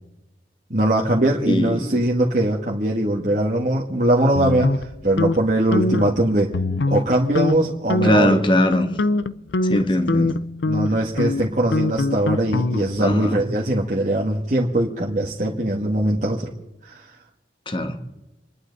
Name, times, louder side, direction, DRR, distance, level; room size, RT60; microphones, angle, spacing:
voice 1, 0.7-6.5 6.9-8.4 10.1-10.3 10.6-16.5 16.8-17.1, right 1 dB, 45° right, -4 dB, 1.8 m, -21 dB
voice 2, 1.4-2.0 8.0-8.9 9.6-10.4 13.0-13.4 17.7-18.0, left 1 dB, 30° left, 7 dB, 1.5 m, -21 dB
sound 1, 4.4-5.4 5.7-6.1 6.5-7.1 7.4-7.6 7.9-8.3 8.7-13.1, left 2 dB, 80° left, 0.6 m, -23 dB
29.0 x 11.5 x 4.1 m, 0.96 s
head